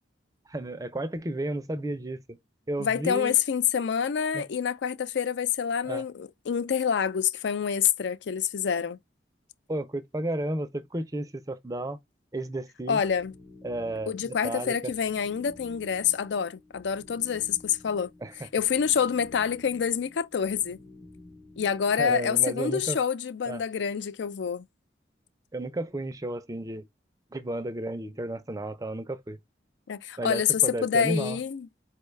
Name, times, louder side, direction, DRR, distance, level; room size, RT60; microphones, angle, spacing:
voice 1, 0.5-2.2 2.7-3.3 4.3-4.4 5.9-6.1 9.7-12.0 12.3-13.0 13.6-14.9 18.2-18.5 22.0-23.0 23.5-23.6 25.5-26.9 27.3-29.4 30.2-31.4, right 1 dB, 20° right, 0.4 m, -32 dB
voice 2, 2.8-9.0 12.9-13.3 14.1-18.1 18.5-20.8 21.6-24.7 29.9-31.7, left 7 dB, 75° left, 0.4 m, -27 dB
sound 1, 13.0-22.2, left 2 dB, 20° left, 0.6 m, -52 dB
4.5 x 2.2 x 3.2 m
head